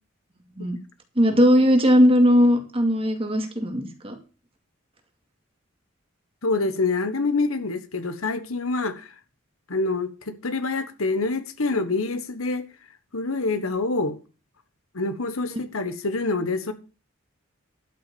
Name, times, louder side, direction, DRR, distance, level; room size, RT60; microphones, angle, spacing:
voice 1, 1.2-4.2, equal, 25° right, 2.2 m, -18 dB
voice 2, 6.4-9.1 9.7-12.7 13.1-14.2 14.9-16.7, left 3 dB, 90° left, 1.4 m, -26 dB
12.0 x 6.3 x 6.9 m
head